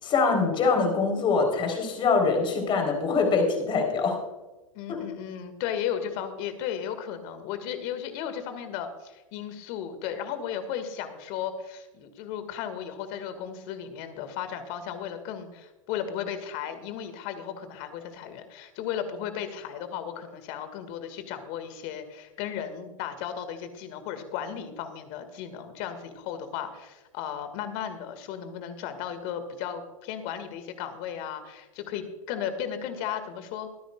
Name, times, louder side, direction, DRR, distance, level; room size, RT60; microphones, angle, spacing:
voice 1, 0.0-4.2 4.9-5.1, left 4 dB, 30° left, 4 dB, 4.1 m, -24 dB
voice 2, 4.7-33.7, left 9 dB, 45° left, 9 dB, 2.0 m, -35 dB
23.5 x 10.0 x 2.4 m, 1.1 s
hypercardioid pair, 105°, 17 cm